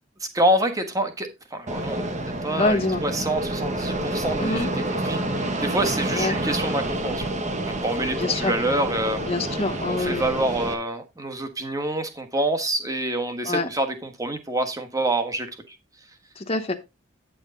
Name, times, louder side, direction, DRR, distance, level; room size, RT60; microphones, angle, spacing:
voice 1, 0.3-2.1 2.4-7.3 7.7-9.2 9.8-15.5, right 1 dB, 15° right, 1.4 m, -26 dB
Fixed-wing aircraft airplane, 1.7-10.7, right 1 dB, 35° right, 1.2 m, -28 dB
voice 2, 2.5-3.0 4.4-4.7 6.2-6.4 8.2-8.5 9.3-10.3 13.4-13.7 16.4-16.8, left 2 dB, 30° left, 0.9 m, -25 dB
9.4 x 6.4 x 3.8 m
head